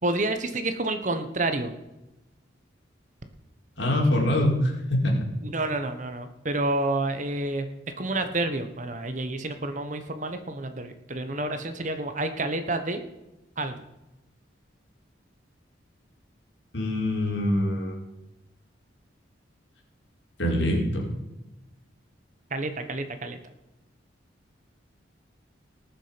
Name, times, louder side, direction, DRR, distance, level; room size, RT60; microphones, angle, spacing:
voice 1, 0.0-1.7 5.4-7.7 8.0-13.0 13.6-13.7 22.5-23.4, right 2 dB, 40° right, 8 dB, 1.2 m, -29 dB
voice 2, 3.8-5.2 16.7-18.0 20.4-21.1, left 1 dB, 70° left, -1 dB, 4.4 m, -24 dB
19.5 x 7.5 x 5.2 m, 0.96 s
head